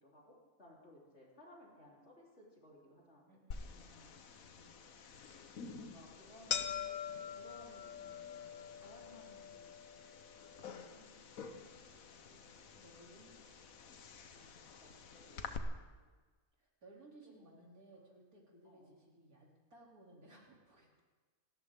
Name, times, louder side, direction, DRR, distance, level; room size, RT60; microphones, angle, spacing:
voice 1, 0.0-3.2 3.7-4.1 5.2-5.3 5.8-7.0 7.3-8.1 8.8-9.8 10.6-12.6 14.3-14.5 14.8-15.7 16.0-16.1 17.2-17.3 18.6-18.9, left 1 dB, 50° left, -4 dB, 4.1 m, -61 dB
voice 2, 3.3-4.0 4.4-4.8 8.0-8.8 12.8-13.4 16.6-21.0, right 1 dB, 90° right, -2 dB, 3.7 m, -61 dB
sound 1, 3.5-15.6, left 7 dB, 75° left, 1.4 m, -46 dB
28.0 x 13.5 x 3.7 m, 1.3 s
omnidirectional pair, 1.5 m